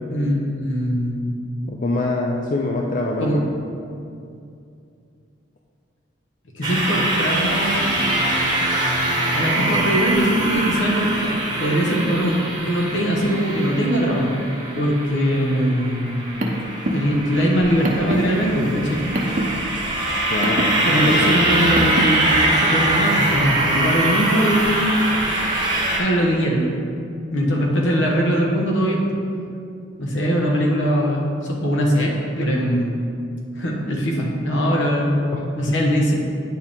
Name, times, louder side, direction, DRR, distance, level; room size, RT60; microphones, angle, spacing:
voice 1, 0.6-1.4 3.2-3.4 6.5-8.0 9.3-12.3 12.6-14.3 14.7-16.2 16.9-19.0 20.8-22.2 22.5-25.0 26.0-26.7 27.3-29.2 30.0-32.1 32.4-32.9 33.6-35.2 35.5-36.1, equal, 70° left, -1 dB, 1.2 m, -21 dB
voice 2, 1.7-3.5 20.3-21.3 35.3-35.4 35.7-35.8, left 2 dB, 40° left, 0 dB, 0.4 m, -25 dB
sound 1, 6.6-26.0, right 1 dB, 20° right, 1.0 m, -23 dB
Car, 16.1-22.3, right 1 dB, 40° right, 0.6 m, -27 dB
9.2 x 4.6 x 3.6 m, 2.5 s
head